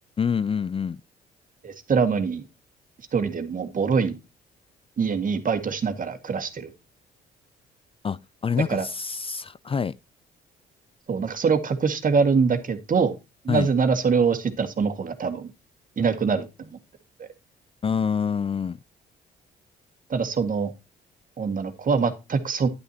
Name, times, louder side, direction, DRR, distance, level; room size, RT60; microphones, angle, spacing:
voice 1, 0.2-1.0 8.0-10.0 13.5-13.7 17.8-18.8, left 6 dB, 30° left, 0.4 m, -26 dB
voice 2, 1.6-2.4 3.1-4.2 5.0-6.7 8.7-8.9 11.1-13.1 13.4-15.5 16.0-16.8 17.2-17.3 20.1-20.7 21.4-22.7, right 5 dB, 45° right, 1.9 m, -24 dB
10.5 x 9.4 x 2.8 m
supercardioid pair, 60°, 19 cm